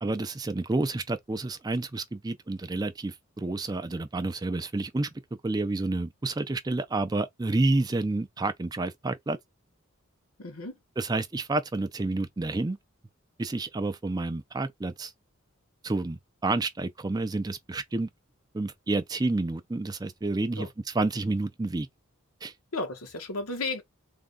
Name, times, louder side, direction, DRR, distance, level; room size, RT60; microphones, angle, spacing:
voice 1, 0.0-5.1 5.4-9.4 11.0-12.8 13.4-15.1 15.8-18.1 18.5-20.7 20.9-21.9 22.4-22.5, right 2 dB, 20° right, 0.4 m, -29 dB
voice 2, 10.4-10.8 20.6-20.7 22.7-23.8, left 2 dB, 90° left, 1.1 m, -33 dB
3.5 x 2.2 x 3.8 m
head